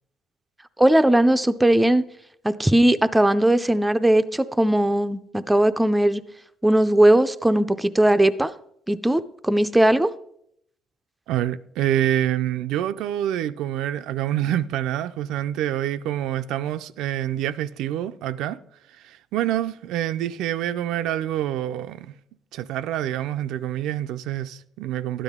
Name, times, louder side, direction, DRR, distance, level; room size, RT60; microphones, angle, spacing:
voice 1, 0.8-2.1 2.4-6.2 6.6-8.5 8.9-10.1, right 1 dB, 5° right, 0.4 m, -19 dB
voice 2, 11.3-18.6 18.9-22.1 22.5-25.2, right 12 dB, 80° right, 0.4 m, -26 dB
12.5 x 9.9 x 3.6 m
cardioid pair, 145°, 0 cm